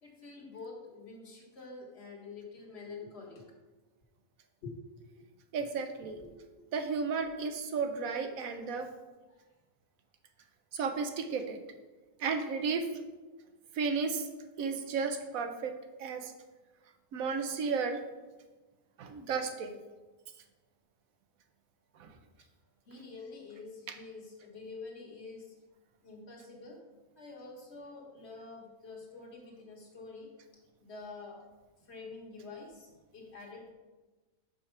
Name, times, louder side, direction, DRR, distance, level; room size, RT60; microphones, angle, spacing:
voice 1, 0.0-3.5 4.6-4.8 5.2-5.3 6.0-6.4 9.3-9.4 22.9-25.5 26.0-26.8 27.2-30.3 30.8-31.4 31.9-33.7, left 3 dB, 50° left, 0 dB, 1.6 m, -47 dB
voice 2, 5.5-6.2 6.7-8.9 10.7-11.6 12.2-12.9 13.8-14.3 14.6-15.7 16.0-16.3 17.1-18.0 19.0-19.8 22.0-22.1, right 5 dB, 80° right, 6 dB, 1.2 m, -33 dB
5.5 x 4.9 x 5.7 m, 1.2 s
omnidirectional pair, 1.4 m